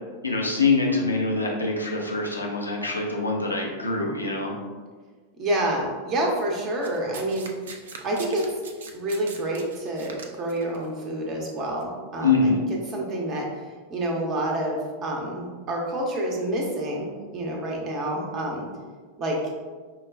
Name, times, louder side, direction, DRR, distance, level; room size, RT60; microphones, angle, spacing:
voice 1, 0.2-4.5 12.2-12.6, left 3 dB, 85° left, -1 dB, 0.5 m, -24 dB
voice 2, 5.4-7.5 8.0-8.5 8.9-12.5 12.9-13.5 13.9-18.7 19.2-19.5, right 1 dB, 30° right, -1 dB, 0.8 m, -28 dB
Domestic sounds home sounds, 6.8-10.8 11.7-11.8, right 5 dB, 60° right, 0.4 m, -42 dB
5.2 x 2.2 x 2.4 m, 1.4 s
figure-of-eight pair, 90°, 0 cm